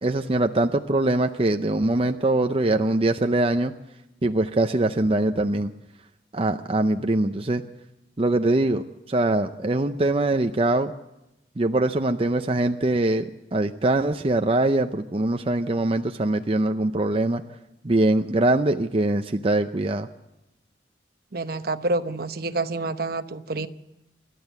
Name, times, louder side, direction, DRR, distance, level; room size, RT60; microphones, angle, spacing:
voice 1, 0.0-3.7 4.2-5.7 6.3-7.6 8.2-10.9 11.6-17.4 17.8-20.1, right 2 dB, 30° right, 6 dB, 0.6 m, -23 dB
voice 2, 21.3-23.7, right 2 dB, 55° right, 10 dB, 0.9 m, -28 dB
27.5 x 12.5 x 8.2 m, 0.92 s
head